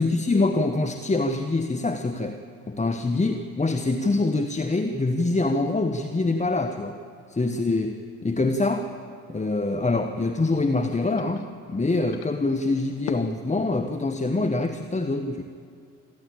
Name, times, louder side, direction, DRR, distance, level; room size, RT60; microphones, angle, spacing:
voice 1, 0.0-2.4 2.7-7.0 7.3-8.9 9.3-15.4, left 2 dB, 15° left, 7 dB, 1.2 m, -25 dB
sound 1, 9.7-14.8, left 9 dB, 65° left, 1.1 m, -44 dB
27.5 x 12.0 x 8.8 m, 2.3 s
hypercardioid pair, 45°, 40 cm